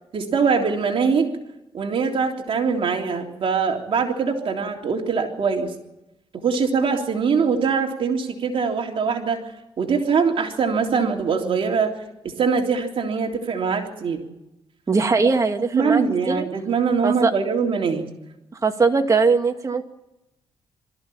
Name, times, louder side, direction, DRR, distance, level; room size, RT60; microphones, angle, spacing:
voice 1, 0.1-1.3 1.7-5.7 6.4-9.4 9.8-11.9 12.4-14.2 15.7-18.1, right 5 dB, 55° right, 2 dB, 3.4 m, -22 dB
voice 2, 14.9-16.5 17.0-17.3 18.6-19.9, right 4 dB, 30° right, 4 dB, 2.2 m, -20 dB
24.0 x 14.5 x 8.6 m, 0.93 s
cardioid pair, 115°, 11 cm